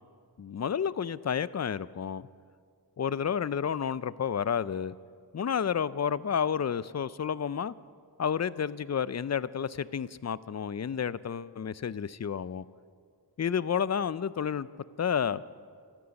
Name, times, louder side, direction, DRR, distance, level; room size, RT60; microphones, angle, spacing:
voice 1, 0.4-2.3 3.0-5.0 5.3-7.7 8.2-12.6 13.4-14.7 15.0-15.4, left 7 dB, 40° left, 18 dB, 0.4 m, -30 dB
14.0 x 13.5 x 7.0 m, 2.1 s
wide cardioid pair, 60°, 43 cm